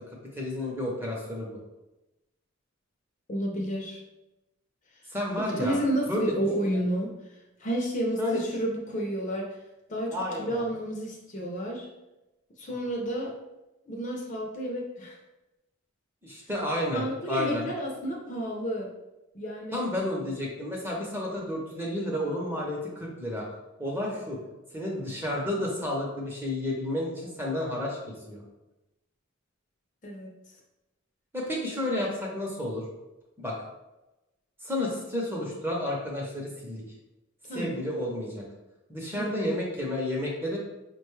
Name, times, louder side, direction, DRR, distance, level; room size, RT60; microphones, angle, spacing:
voice 1, 0.4-1.6 5.1-5.8 6.1-6.2 8.2-8.4 10.1-10.7 16.2-17.7 19.7-23.5 23.8-24.4 24.7-28.4 31.3-32.8 33.4-33.5 34.6-36.8 37.5-38.5 38.9-40.6, left 1 dB, 10° right, -2 dB, 0.6 m, -31 dB
voice 2, 3.3-4.0 5.6-7.1 7.6-9.5 9.9-11.9 12.6-13.4 13.9-15.2 16.9-18.9 19.3-19.9 30.0-30.3 37.5-37.8 39.2-39.5, right 1 dB, 35° left, -1 dB, 0.5 m, -31 dB
4.9 x 2.2 x 3.1 m, 1.0 s
head